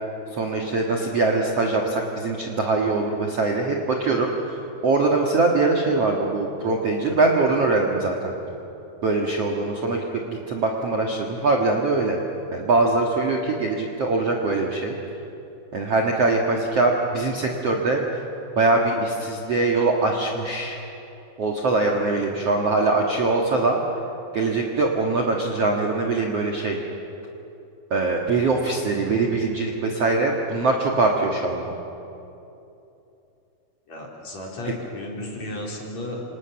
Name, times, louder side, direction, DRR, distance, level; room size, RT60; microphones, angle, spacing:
voice 1, 0.3-8.3 9.0-12.2 12.5-15.0 15.7-18.2 18.6-20.8 21.4-23.8 24.3-26.8 27.9-31.7 34.6-34.7, right 3 dB, 50° right, 0 dB, 2.0 m, -22 dB
voice 2, 33.9-36.2, left 2 dB, 40° left, -1 dB, 4.7 m, -34 dB
28.5 x 27.5 x 7.1 m, 2.9 s
omnidirectional pair, 5.0 m